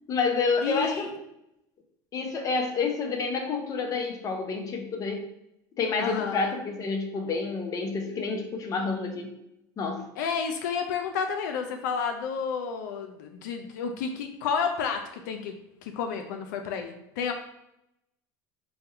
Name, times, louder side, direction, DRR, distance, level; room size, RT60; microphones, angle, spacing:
voice 1, 0.1-1.1 2.1-5.2 5.8-9.3 9.8-10.0, left 4 dB, 35° left, 4 dB, 0.7 m, -29 dB
voice 2, 0.6-1.1 6.0-6.6 10.2-15.5 15.8-17.3, left 6 dB, 85° left, 5 dB, 0.4 m, -31 dB
3.4 x 2.2 x 4.3 m, 0.83 s
supercardioid pair, 105°, 10 cm